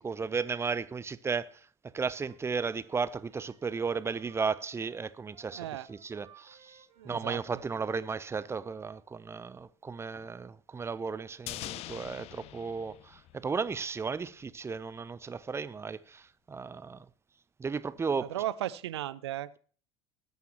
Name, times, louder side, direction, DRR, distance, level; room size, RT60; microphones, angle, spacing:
voice 1, 0.0-1.5 1.9-17.0 17.6-18.4, right 5 dB, 20° right, 0.6 m, -35 dB
Wind instrument woodwind instrument, 2.0-8.6, right 8 dB, 50° right, 2.2 m, -60 dB
voice 2, 5.5-5.9 7.0-7.4 18.2-19.6, right 13 dB, 75° right, 0.5 m, -36 dB
sound 1, 11.5-13.9 14.1-14.2, left 16 dB, 45° left, 0.4 m, -43 dB
19.0 x 9.2 x 3.0 m
figure-of-eight pair, 65°, 14 cm